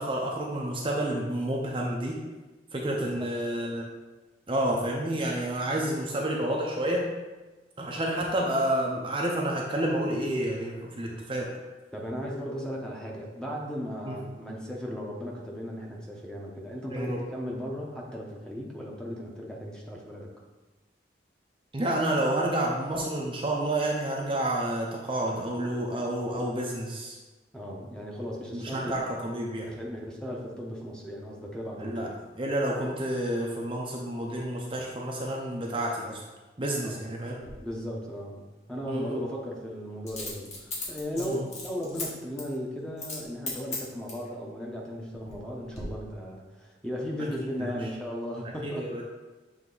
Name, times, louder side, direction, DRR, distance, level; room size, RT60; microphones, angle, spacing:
voice 1, 0.0-2.2 2.7-3.9 4.5-7.1 7.8-11.5 14.1-14.2 16.9-17.2 21.7-27.2 28.5-29.7 31.8-32.1 32.4-36.2 36.6-37.4 38.9-39.2 41.2-41.5 47.6-47.8 48.6-49.0, right 1 dB, 30° right, -2 dB, 0.6 m, -29 dB
voice 2, 2.9-3.3 11.9-20.3 27.5-28.9 29.6-32.2 36.8-37.0 37.4-48.8, equal, 5° left, -2 dB, 0.8 m, -36 dB
Coin (dropping), 37.4-37.5 40.1-42.1 42.4-42.5 43.0-43.2 43.5-44.3 44.9-45.4 45.7-45.8, left 3 dB, 40° left, 1.4 m, -36 dB
7.3 x 3.4 x 3.9 m, 1.2 s
head